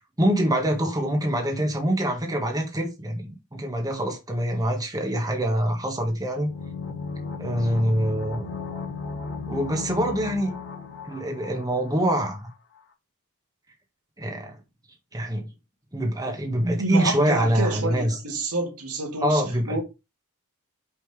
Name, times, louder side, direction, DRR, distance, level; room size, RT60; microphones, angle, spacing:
voice 1, 0.2-6.5 7.4-8.5 9.5-10.6 11.1-12.5 14.2-14.5 15.1-15.5 15.9-18.1 19.2-19.8, equal, 15° right, 1.7 m, -25 dB
sound 1, 6.4-12.1 12.3-12.4, left 5 dB, 55° left, 1.7 m, -35 dB
voice 2, 16.6-19.8, right 2 dB, 85° right, 2.2 m, -28 dB
5.8 x 5.5 x 4.8 m
head